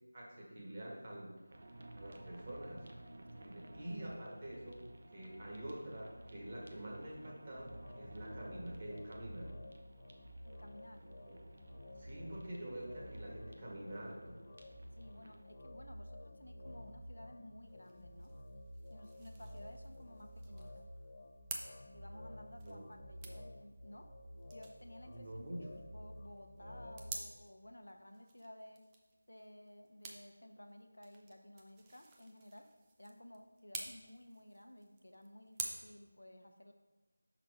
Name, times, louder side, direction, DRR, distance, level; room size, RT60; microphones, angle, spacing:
voice 1, 0.1-1.6 1.9-2.9 3.4-9.5 11.0-11.4 11.9-14.4 22.5-22.8 25.0-25.6, right 1 dB, 35° right, -4 dB, 1.7 m, -47 dB
sound 1, 1.5-15.4, right 1 dB, 50° right, 0.7 m, -56 dB
sound 2, 7.5-27.2, equal, 35° left, 0.6 m, -52 dB
voice 2, 10.4-11.1 14.9-18.3 18.9-20.9 21.9-24.1 24.5-25.4 25.8-28.9 29.3-32.7 33.0-36.7, left 1 dB, 85° left, 6 dB, 0.7 m, -55 dB
sound 3, 17.6-35.6, right 4 dB, 10° right, 0.4 m, -52 dB
6.2 x 5.8 x 3.3 m, 1.1 s
figure-of-eight pair, 170°, 0 cm